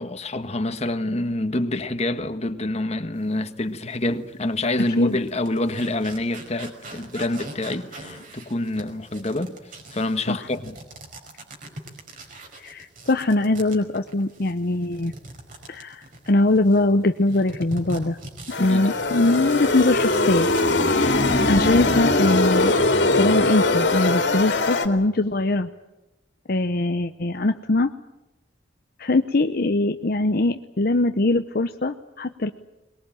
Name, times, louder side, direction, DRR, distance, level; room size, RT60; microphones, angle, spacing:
voice 1, 0.0-9.5 9.9-10.8 18.6-18.9 20.9-21.2, left 2 dB, 35° left, 9 dB, 1.5 m, -27 dB
sound 1, 3.9-4.0 4.6-16.8 17.3-20.8 21.1-21.3, right 2 dB, 50° right, 5.1 m, -41 dB
voice 2, 12.6-15.1 15.7-18.2 18.6-20.5 21.5-22.7 23.1-25.7 26.5-27.9 29.0-32.5, left 2 dB, 55° left, 8 dB, 0.8 m, -22 dB
sound 2, 18.5-24.9, left 2 dB, 90° left, 2.5 m, -21 dB
22.5 x 21.5 x 9.0 m, 0.99 s
head